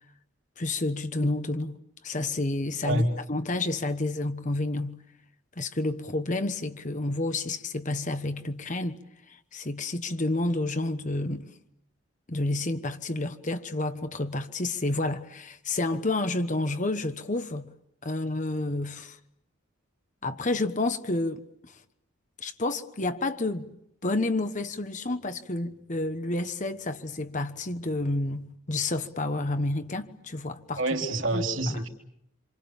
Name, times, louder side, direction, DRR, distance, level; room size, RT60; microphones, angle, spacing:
voice 1, 0.6-3.0 3.3-5.0 5.6-9.0 9.3-11.5 12.3-17.7 18.0-19.2 20.2-21.8 22.4-23.7 24.0-30.8 31.3-31.8, left 2 dB, 35° left, 1.2 m, -30 dB
voice 2, 30.8-31.9, right 1 dB, 60° right, 3.5 m, -27 dB
27.5 x 27.0 x 7.2 m
head